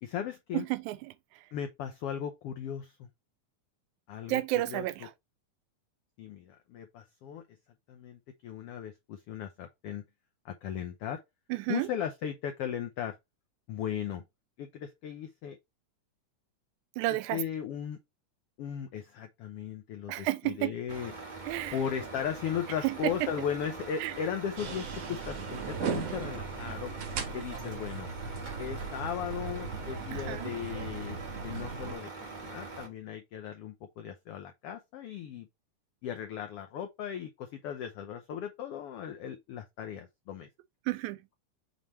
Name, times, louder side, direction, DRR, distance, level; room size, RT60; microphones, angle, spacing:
voice 1, 0.0-0.7 1.5-3.0 4.1-4.4 4.7-4.8 6.2-7.4 7.9-10.0 10.4-11.2 11.7-13.2 13.7-14.2 14.6-15.6 17.3-18.0 18.6-21.1 21.7-26.9 27.3-28.1 28.6-32.1 32.4-35.5 36.0-40.5, left 8 dB, 85° left, 1.3 m, -37 dB
voice 2, 0.5-1.1 4.3-5.1 11.5-11.9 17.0-17.4 20.1-20.7 21.4-21.8 22.8-23.3 24.0-24.1 30.1-30.5 40.9-41.2, right 17 dB, 80° right, 1.9 m, -31 dB
Truck, 20.9-32.9, right 3 dB, 30° right, 0.8 m, -43 dB
sound 1, 24.6-32.0, right 6 dB, 60° right, 2.1 m, -38 dB
7.2 x 3.2 x 4.2 m
omnidirectional pair, 3.5 m